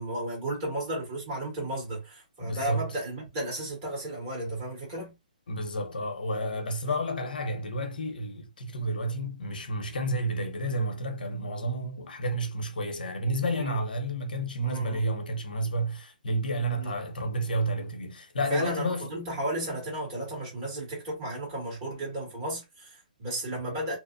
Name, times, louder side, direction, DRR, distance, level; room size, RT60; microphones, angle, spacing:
voice 1, 0.0-5.1 6.9-7.0 13.6-13.8 14.6-15.0 16.7-16.9 18.5-24.0, right 1 dB, 25° right, 1.7 m, -34 dB
voice 2, 2.4-3.0 5.5-19.1, right 1 dB, 80° left, 0.8 m, -31 dB
2.8 x 2.1 x 2.5 m
hypercardioid pair, 170°, 5 cm